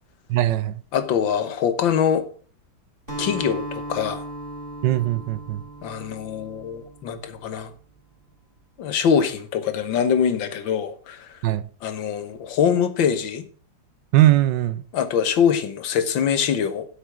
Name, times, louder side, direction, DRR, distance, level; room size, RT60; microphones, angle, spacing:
voice 1, 0.3-0.8 4.8-5.6 11.4-11.6 14.1-14.8, right 14 dB, 75° right, 1.3 m, -20 dB
voice 2, 0.9-2.3 3.2-4.2 5.8-7.7 8.8-11.3 11.8-13.4 14.9-16.9, left 7 dB, 85° left, 1.9 m, -23 dB
Acoustic guitar, 3.1-7.6, right 1 dB, 25° right, 4.1 m, -36 dB
8.4 x 8.1 x 6.2 m
omnidirectional pair, 2.0 m